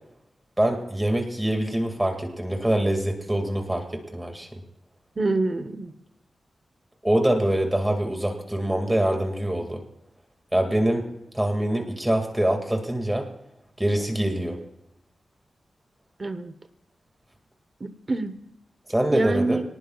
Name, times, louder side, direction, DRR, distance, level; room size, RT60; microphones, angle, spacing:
voice 1, 0.6-3.8 4.1-4.6 7.0-9.8 10.5-11.1 11.3-13.3 13.8-14.6 18.9-19.6, right 1 dB, 10° right, 3 dB, 2.0 m, -24 dB
voice 2, 5.2-5.9 16.2-16.5 17.8-18.4 19.1-19.6, right 2 dB, 30° right, 10 dB, 0.9 m, -26 dB
26.0 x 19.0 x 2.3 m, 0.83 s
wide cardioid pair, 170°, 0 cm